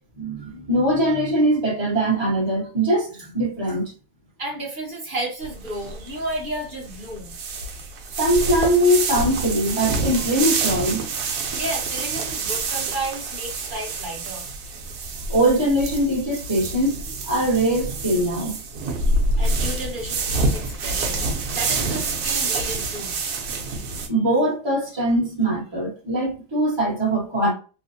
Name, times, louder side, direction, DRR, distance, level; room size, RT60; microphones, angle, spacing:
voice 1, 0.2-3.9 8.2-11.0 15.3-18.6 24.1-27.5, right 1 dB, 15° right, 1.1 m, -21 dB
voice 2, 4.4-7.3 11.5-14.4 19.4-21.2 21.5-23.2, right 1 dB, 35° right, 0.9 m, -32 dB
sound 1, 5.4-24.1, right 3 dB, 65° right, 1.2 m, -27 dB
3.3 x 2.5 x 2.6 m
omnidirectional pair, 1.8 m